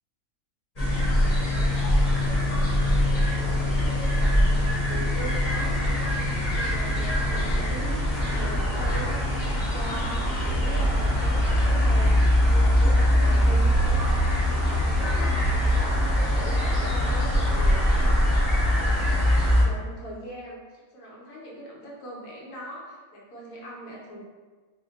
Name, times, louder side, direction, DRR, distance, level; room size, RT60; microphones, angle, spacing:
sound 1, 0.8-19.6, left 1 dB, 30° left, 0.9 m, -22 dB
voice 1, 1.4-1.9 2.2-3.0 3.4-6.2 6.5-14.2 14.7-18.2 18.7-24.2, equal, 75° left, -4 dB, 1.2 m, -40 dB
2.8 x 2.1 x 3.9 m, 1.4 s
omnidirectional pair, 1.5 m